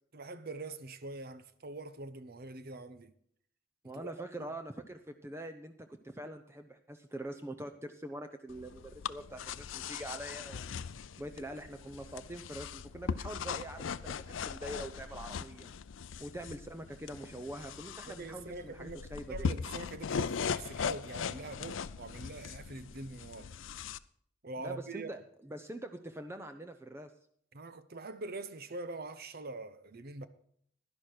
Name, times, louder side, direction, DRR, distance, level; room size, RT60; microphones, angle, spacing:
voice 1, 0.1-3.1 3.8-4.1 4.4-4.5 18.1-23.5 24.4-25.1 27.5-30.3, right 2 dB, 55° right, 0.9 m, -44 dB
voice 2, 3.8-10.7 11.2-15.7 16.2-19.5 24.6-27.1, right 1 dB, 15° right, 0.7 m, -44 dB
sound 1, 8.5-24.0, left 6 dB, 85° left, 0.5 m, -40 dB
11.5 x 11.0 x 4.4 m
head